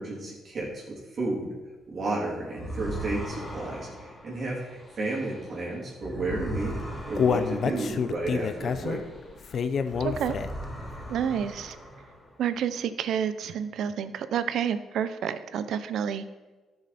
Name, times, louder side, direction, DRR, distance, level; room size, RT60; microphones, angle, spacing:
voice 1, 0.0-1.5 1.9-6.8 7.1-9.0, right 2 dB, 50° right, -5 dB, 3.3 m, -32 dB
sound 1, 2.5-9.4 9.8-12.5, right 1 dB, 15° left, 3.7 m, -39 dB
Human voice, 6.5-10.7 11.1-11.2 11.7-11.8, left 6 dB, 55° left, 0.6 m, -28 dB
voice 2, 10.0-10.4 11.1-11.8 12.4-16.2, right 8 dB, 75° right, 12 dB, 0.6 m, -29 dB
12.0 x 6.7 x 4.3 m, 1.2 s
cardioid pair, 90°, 0 cm